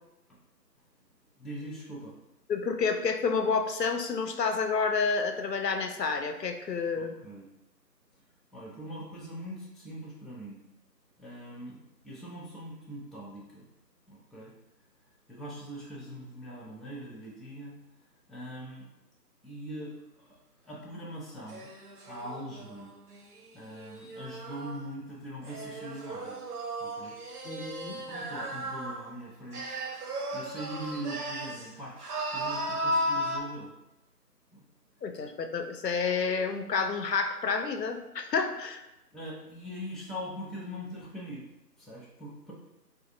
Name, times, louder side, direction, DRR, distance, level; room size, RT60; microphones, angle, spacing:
voice 1, 1.4-2.2 6.9-7.5 8.5-10.6 11.2-11.8 12.0-13.7 14.1-14.5 15.3-17.8 18.3-18.9 19.4-21.7 22.1-22.9 23.5-26.4 26.8-27.2 27.5-27.7 28.0-29.8 30.3-33.7 34.5-34.6 39.1-41.5 41.8-42.5, equal, ahead, -6 dB, 0.4 m, -42 dB
voice 2, 2.5-7.1 27.4-28.0 35.0-38.8, left 5 dB, 75° left, 6 dB, 0.6 m, -29 dB
sound 1, 21.5-24.8 25.4-29.1 29.5-31.7 32.0-33.4, right 1 dB, 65° right, 0.6 m, -35 dB
3.7 x 2.4 x 2.6 m, 0.95 s
figure-of-eight pair, 165°, 50 cm